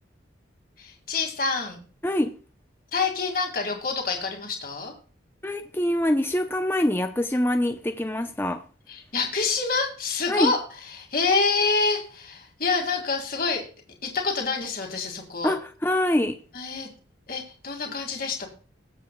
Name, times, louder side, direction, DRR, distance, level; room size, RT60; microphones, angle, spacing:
voice 1, 0.8-1.8 2.9-4.9 8.9-10.6 10.8-13.6 14.0-15.5 16.5-16.9 17.3-18.5, left 4 dB, 45° left, 2 dB, 2.0 m, -27 dB
voice 2, 5.4-8.6 10.3-10.5 15.4-16.4, left 1 dB, 10° left, 6 dB, 0.5 m, -24 dB
20.0 x 7.4 x 2.2 m, 0.38 s
head